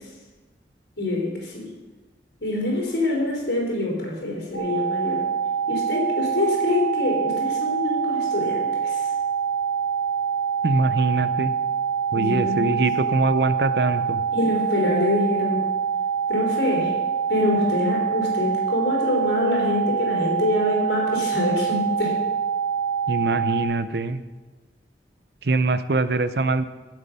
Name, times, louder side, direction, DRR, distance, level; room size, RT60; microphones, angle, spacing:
voice 1, 1.0-1.7 2.4-5.2 5.7-9.1 12.1-12.8 14.3-15.6 16.3-16.9 17.3-22.2, left 1 dB, 80° left, -2 dB, 4.6 m, -25 dB
sound 1, 4.5-23.6, right 7 dB, 55° left, 1.9 m, -25 dB
voice 2, 10.6-11.5 12.1-14.2 23.1-24.2 25.4-26.7, right 3 dB, 65° right, 13 dB, 0.7 m, -23 dB
16.0 x 7.9 x 5.6 m, 1.2 s
head